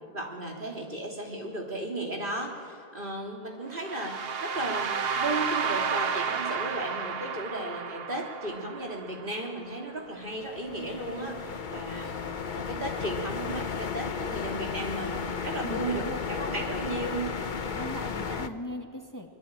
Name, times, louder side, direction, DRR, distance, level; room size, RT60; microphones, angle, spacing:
voice 1, 0.0-17.5, right 1 dB, 55° right, 0 dB, 3.7 m, -35 dB
sound 1, 3.7-9.7, right 6 dB, 70° right, 1.2 m, -32 dB
sound 2, 10.2-18.5, left 6 dB, 50° left, 1.0 m, -34 dB
voice 2, 15.6-16.2 17.7-19.3, equal, 20° left, 3 dB, 1.8 m, -39 dB
25.0 x 21.5 x 9.1 m, 2.2 s
omnidirectional pair, 1.0 m